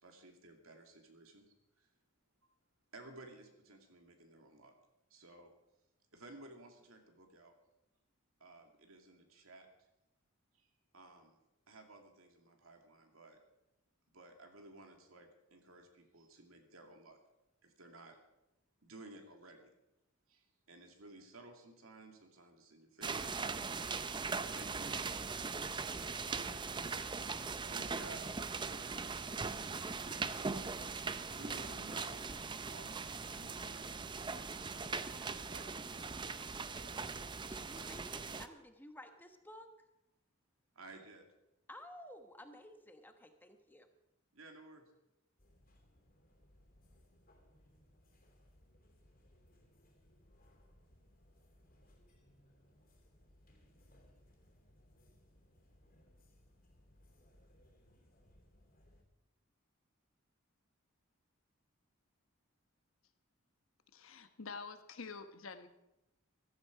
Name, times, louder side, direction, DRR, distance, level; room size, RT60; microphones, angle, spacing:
voice 1, 0.0-1.9 2.9-4.7 5.1-5.5 6.1-7.5 8.4-9.7 10.5-11.4 11.7-13.4 14.1-17.2 17.6-18.2 18.8-19.7 20.3-23.6 24.5-26.5 27.6-28.2 28.6-30.4 30.9-33.9 35.1-37.9 40.7-41.3 44.3-44.9, right 2 dB, 80° right, 4 dB, 2.4 m, -57 dB
sound 1, 23.0-38.5, right 4 dB, 20° right, 0.5 m, -40 dB
voice 2, 37.5-39.7 41.7-43.9, left 1 dB, 10° left, 6 dB, 1.1 m, -54 dB
sound 2, 45.4-59.0, left 1 dB, 45° left, 3.0 m, -66 dB
voice 3, 63.9-65.7, left 4 dB, 70° left, 9 dB, 1.1 m, -47 dB
15.5 x 13.0 x 4.9 m, 0.91 s
head